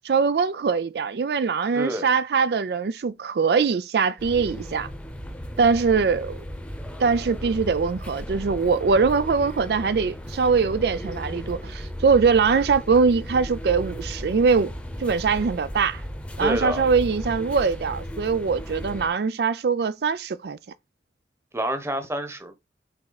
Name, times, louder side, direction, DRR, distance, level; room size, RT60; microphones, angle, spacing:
voice 1, 0.0-4.9 5.6-6.4 7.0-14.7 15.0-16.0 16.4-20.6, right 5 dB, 65° right, 0.4 m, -22 dB
voice 2, 1.7-2.1 16.4-16.8 21.5-22.6, right 1 dB, 15° right, 1.0 m, -27 dB
sound 1, 4.2-19.1, equal, 5° left, 0.8 m, -35 dB
6.1 x 4.3 x 4.0 m
head